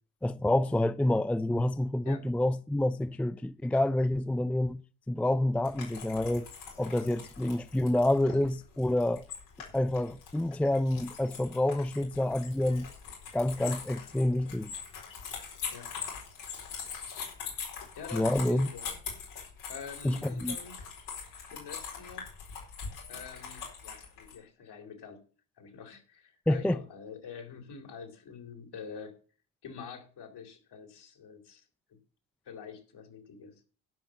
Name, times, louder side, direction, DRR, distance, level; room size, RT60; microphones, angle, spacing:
voice 1, 0.2-4.8 5.1-6.5 6.8-9.3 9.7-12.9 13.3-14.7 18.1-18.7 20.0-20.6 26.5-26.8, left 1 dB, 5° left, 0.4 m, -28 dB
sound 1, 5.6-24.4, left 6 dB, 85° left, 4.5 m, -42 dB
voice 2, 17.9-18.9 19.7-20.8 21.5-22.3 23.1-25.2 25.6-29.1 29.6-31.6 31.9-32.0 32.5-33.6, left 6 dB, 60° left, 3.7 m, -46 dB
12.0 x 5.7 x 7.8 m
hypercardioid pair, 55°, 44 cm